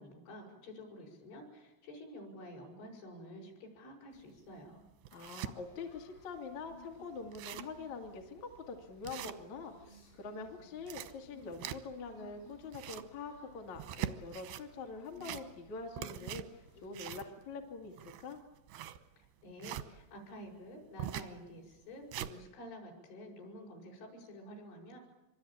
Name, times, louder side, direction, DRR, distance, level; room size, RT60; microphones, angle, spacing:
voice 1, 0.0-4.8 19.2-25.0, equal, 65° left, 0 dB, 8.8 m, -50 dB
sound 1, 4.2-4.3 4.8-5.5 6.1-6.2 6.5-6.6 6.9-7.0 7.2-7.8 8.3-8.4 9.0-9.8 10.6-12.1 12.5-13.2 13.7-14.7 15.1-15.7 16.0-19.9 21.0-21.4 21.8-22.3, right 12 dB, 75° right, 2.4 m, -42 dB
voice 2, 5.1-18.4, left 4 dB, 45° left, 2 dB, 2.6 m, -45 dB
sound 2, 5.5-17.2, left 1 dB, 85° left, 9.8 m, -60 dB
26.0 x 24.0 x 8.7 m, 1.0 s
omnidirectional pair, 5.9 m